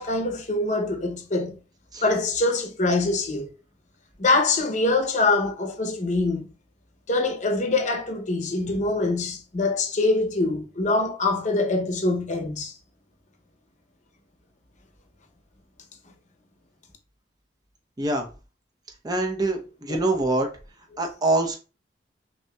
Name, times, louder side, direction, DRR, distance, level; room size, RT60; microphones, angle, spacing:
voice 1, 0.0-1.6 2.0-3.5 4.2-6.5 7.1-12.8 19.9-20.0, left 2 dB, 45° left, 0.8 m, -24 dB
voice 2, 19.0-20.5 21.0-21.6, right 2 dB, 25° right, 0.8 m, -24 dB
5.8 x 2.7 x 2.3 m
head